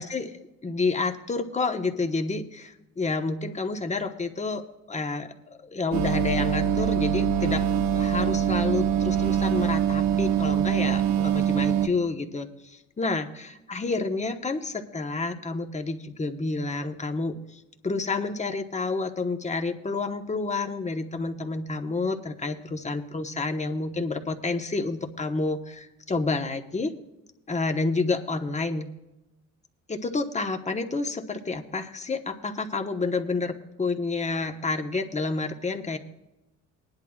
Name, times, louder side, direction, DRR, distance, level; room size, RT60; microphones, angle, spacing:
voice 1, 0.0-7.6 7.9-26.9 27.5-28.9 29.9-36.0, left 3 dB, 20° left, 6 dB, 1.2 m, -29 dB
sound 1, 5.9-11.9, right 9 dB, 65° right, 1.2 m, -24 dB
19.0 x 10.5 x 2.4 m, 0.96 s
cardioid pair, 90°, 31 cm